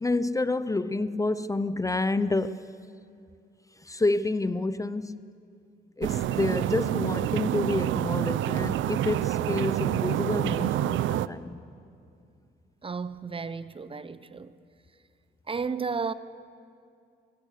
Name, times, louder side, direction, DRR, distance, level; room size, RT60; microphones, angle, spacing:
voice 1, 0.0-2.6 3.8-5.2 6.0-11.6, left 2 dB, 15° left, 0.6 m, -28 dB
sound 1, 6.0-11.3, right 12 dB, 75° right, 0.5 m, -27 dB
voice 2, 12.8-14.5 15.5-16.1, right 5 dB, 25° right, 0.7 m, -33 dB
22.0 x 18.0 x 6.6 m
cardioid pair, 90°, 20 cm